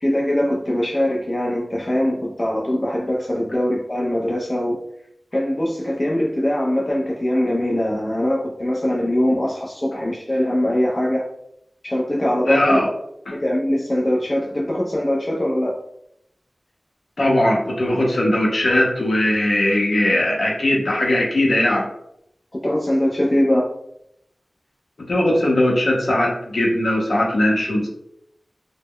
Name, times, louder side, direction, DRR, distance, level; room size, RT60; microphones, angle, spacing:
voice 1, 0.0-4.8 5.3-11.3 11.8-12.8 13.3-15.7 22.5-23.7, left 1 dB, 35° left, -3 dB, 0.4 m, -22 dB
voice 2, 12.5-12.9 13.3-13.4 17.2-21.9 25.1-27.9, left 1 dB, 70° left, -2 dB, 0.7 m, -19 dB
2.1 x 2.0 x 3.5 m, 0.76 s
wide cardioid pair, 65°, 0 cm